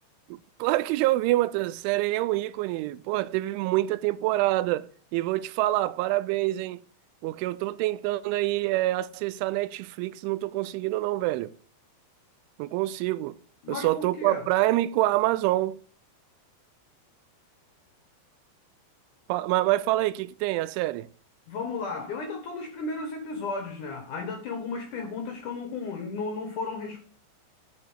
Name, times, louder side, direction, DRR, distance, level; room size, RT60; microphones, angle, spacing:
voice 1, 0.3-6.8 7.2-11.5 12.6-13.4 13.7-15.8 19.3-21.1, right 17 dB, 85° right, 3.0 m, -26 dB
voice 2, 13.6-14.5 21.5-27.0, left 4 dB, 80° left, 1.8 m, -34 dB
11.0 x 4.2 x 7.9 m
omnidirectional pair, 5.5 m